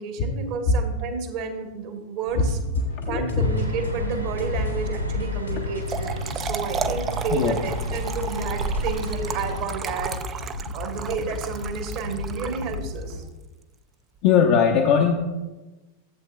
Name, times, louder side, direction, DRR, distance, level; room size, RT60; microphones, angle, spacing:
voice 1, 0.0-2.6 3.0-10.4 10.7-13.2, right 4 dB, 50° right, 4 dB, 1.3 m, -31 dB
sound 1, 2.3-13.2, left 2 dB, 75° left, 1.8 m, -35 dB
voice 2, 3.0-3.5 7.3-7.5 14.2-15.2, left 7 dB, 45° left, 2 dB, 0.8 m, -19 dB
sound 2, 3.4-9.6, equal, 90° right, 0.8 m, -31 dB
Trickle dribble / Fill (with liquid), 5.6-13.1, right 6 dB, 25° right, 0.4 m, -34 dB
13.5 x 7.9 x 2.3 m, 1.1 s
figure-of-eight pair, 90°, 0 cm